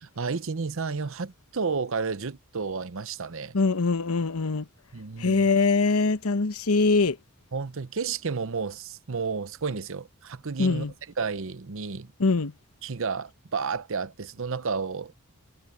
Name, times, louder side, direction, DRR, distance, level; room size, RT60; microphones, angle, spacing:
voice 1, 0.0-3.6 4.9-5.5 7.5-10.9 11.2-12.1 12.8-15.2, right 5 dB, 65° right, 0.8 m, -31 dB
voice 2, 3.5-4.7 5.2-7.2 10.6-10.9 12.2-12.5, left 3 dB, 85° left, 1.0 m, -23 dB
head